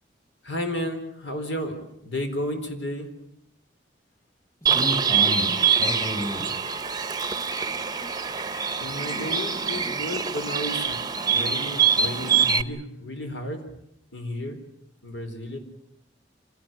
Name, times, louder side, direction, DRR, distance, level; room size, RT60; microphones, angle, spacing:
voice 1, 0.4-3.1 8.8-11.0 11.3-13.6 14.1-14.6 15.0-15.6, left 1 dB, 75° left, 6 dB, 4.2 m, -32 dB
voice 2, 4.6-6.6, equal, 15° left, 4 dB, 6.6 m, -31 dB
Bird, 4.7-12.6, right 6 dB, 20° right, 0.9 m, -24 dB
26.5 x 18.0 x 9.0 m, 0.75 s
head